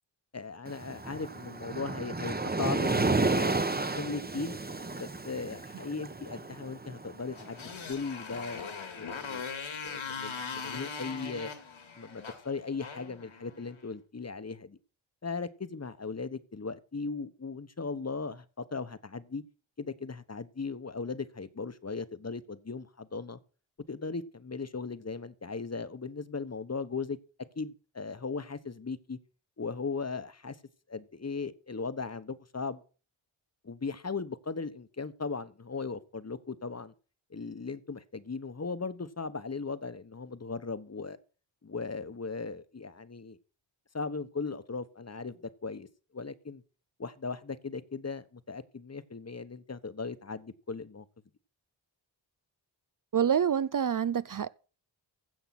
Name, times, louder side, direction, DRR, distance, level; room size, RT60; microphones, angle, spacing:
voice 1, 0.3-3.6 3.9-4.5 4.9-7.6 7.9-9.4 9.8-11.5 11.9-14.8 15.2-19.4 19.8-23.4 23.9-27.2 27.6-29.2 29.6-30.6 30.9-32.8 33.6-36.9 37.3-41.2 41.6-43.4 43.9-45.9 46.1-46.6 47.0-51.0, left 4 dB, 30° left, 1.2 m, -38 dB
Waves surf, 0.7-7.8, right 3 dB, 20° right, 1.1 m, -32 dB
Motorcycle, 7.3-13.8, left 5 dB, 70° left, 2.6 m, -40 dB
voice 2, 53.1-54.5, right 8 dB, 45° right, 0.5 m, -27 dB
15.5 x 5.9 x 6.0 m
cardioid pair, 55°, 48 cm